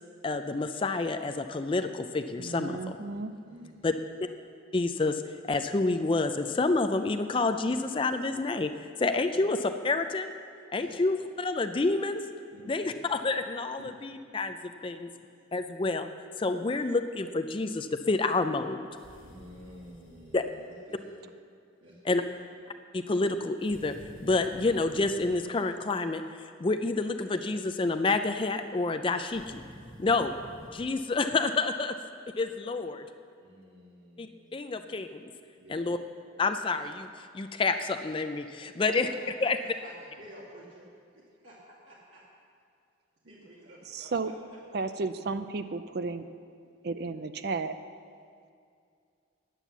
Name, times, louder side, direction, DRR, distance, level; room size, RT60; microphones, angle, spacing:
voice 1, 0.2-3.0 3.8-3.9 4.7-5.2 5.5-8.7 9.0-10.3 10.7-12.2 12.7-14.6 14.8-15.1 15.5-16.1 16.4-18.8 20.3-20.4 22.0-22.2 22.9-23.9 24.2-26.2 26.6-29.6 30.0-30.3 30.7-31.9 32.4-33.1 34.2-34.3 34.5-35.2 35.7-36.0 36.4-37.1 37.3-39.1 39.4-39.6, left 3 dB, 25° left, 8 dB, 0.4 m, -28 dB
voice 2, 2.4-3.3 43.9-44.3 44.7-46.3 46.8-47.7, right 3 dB, 55° right, 11 dB, 0.4 m, -33 dB
voice 3, 3.5-3.9 9.3-9.4 10.8-11.0 12.5-13.0 14.8-15.2 16.6-16.7 19.2-21.3 21.8-22.3 33.4-34.8 35.6-35.8 38.8-39.2 39.4-40.9 41.4-41.5 42.1-42.2 43.2-44.8, equal, 75° right, -7 dB, 2.0 m, -51 dB
sound 1, 18.9-20.4 23.6-25.4 29.2-30.9, equal, 85° left, 1.5 m, -50 dB
9.9 x 9.2 x 7.1 m, 2.3 s
head